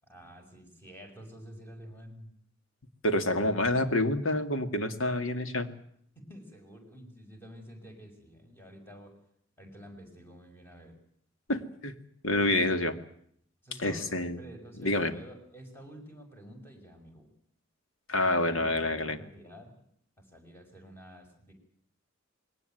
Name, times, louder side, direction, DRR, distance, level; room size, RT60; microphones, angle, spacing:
voice 1, 0.0-2.3 6.1-9.1 9.6-10.9 13.6-17.3 18.1-19.7 20.2-21.5, equal, 10° left, 4 dB, 6.0 m, -49 dB
voice 2, 3.0-5.7 11.5-11.9 12.2-12.9 13.8-14.4 14.8-15.1 18.1-19.2, left 1 dB, 85° left, 8 dB, 2.1 m, -27 dB
21.0 x 18.5 x 9.2 m, 0.67 s
head